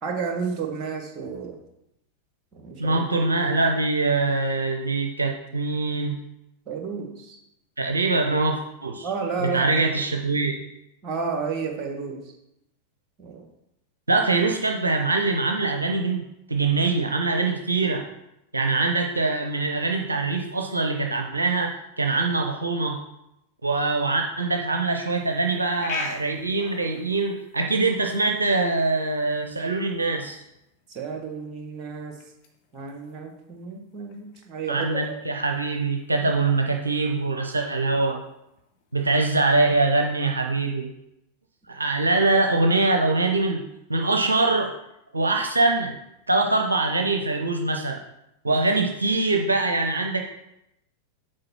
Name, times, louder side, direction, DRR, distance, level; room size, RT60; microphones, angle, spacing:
voice 1, 0.0-1.6 2.5-3.0 6.7-7.4 9.0-10.0 11.0-12.2 13.2-13.4 30.9-32.1 32.7-35.0 42.1-42.2 48.4-48.8, right 5 dB, 30° right, 3 dB, 1.6 m, -32 dB
voice 2, 2.8-6.1 7.8-9.1 9.4-10.5 14.1-16.2 16.5-18.0 18.5-23.0 23.6-30.4 34.7-38.2 38.9-40.9 41.7-43.6 43.9-44.7 45.1-46.0 46.3-48.0 48.4-50.2, right 3 dB, 80° right, 3 dB, 0.6 m, -23 dB
sound 1, 25.1-39.2, left 4 dB, 45° left, 1.3 m, -44 dB
7.5 x 4.4 x 6.1 m, 0.86 s
figure-of-eight pair, 90°, 0 cm